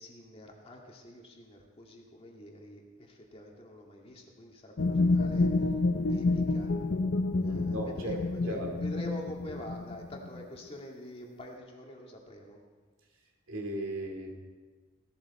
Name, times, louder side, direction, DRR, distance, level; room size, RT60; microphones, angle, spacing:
voice 1, 0.0-5.5 6.1-6.7 7.4-12.6, left 1 dB, 30° left, 0 dB, 2.1 m, -46 dB
sound 1, 4.8-10.4, left 3 dB, 60° left, 0.7 m, -29 dB
voice 2, 7.4-8.2 8.5-8.7 13.5-14.3, right 1 dB, 85° right, 1 dB, 2.4 m, -36 dB
17.0 x 12.5 x 4.3 m, 1.4 s
head